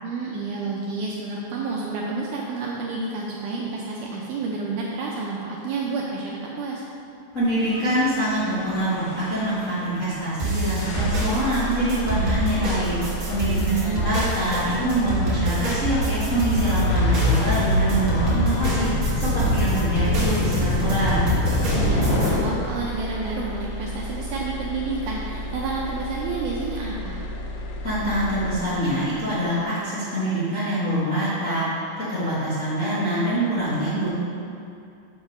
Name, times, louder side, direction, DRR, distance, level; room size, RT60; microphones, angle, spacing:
voice 1, 0.0-6.8 13.6-14.0 21.7-27.2, right 3 dB, 80° right, -3 dB, 1.9 m, -30 dB
voice 2, 7.3-13.0 13.3-21.2 27.8-34.1, right 1 dB, 40° left, -12 dB, 1.1 m, -25 dB
Gull seagull / Waves surf / Siren, 7.6-22.3, left 1 dB, 65° left, 2.0 m, -29 dB
sound 1, 10.4-22.3, right 2 dB, 50° right, 1.6 m, -26 dB
sound 2, 10.8-29.1, left 1 dB, 90° left, 2.6 m, -30 dB
7.1 x 5.1 x 5.3 m, 2.5 s
omnidirectional pair, 4.2 m